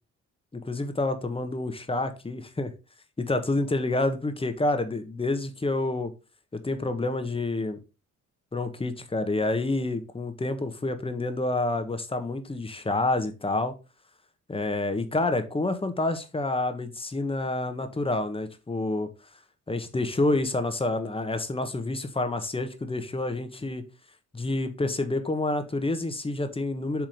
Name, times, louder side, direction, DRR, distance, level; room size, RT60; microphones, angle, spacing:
voice 1, 0.5-2.7 3.2-6.1 6.5-7.8 8.5-13.7 14.5-19.1 19.7-23.8 24.3-27.1, left 2 dB, 20° left, 1.4 m, -28 dB
7.7 x 3.7 x 5.1 m
cardioid pair, 90°, 30 cm